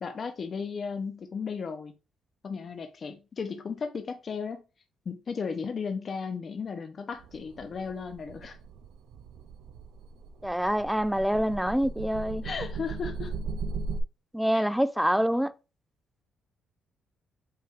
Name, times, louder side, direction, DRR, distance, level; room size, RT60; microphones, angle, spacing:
voice 1, 0.0-1.9 2.4-4.6 5.1-8.6 12.4-13.3 14.5-14.7, left 5 dB, 45° left, 0.6 m, -35 dB
sound 1, 7.2-14.0, right 4 dB, 80° right, 0.4 m, -38 dB
voice 2, 10.4-12.4 14.3-15.5, equal, ahead, 0.4 m, -26 dB
5.6 x 3.3 x 2.4 m
cardioid pair, 90°, 0 cm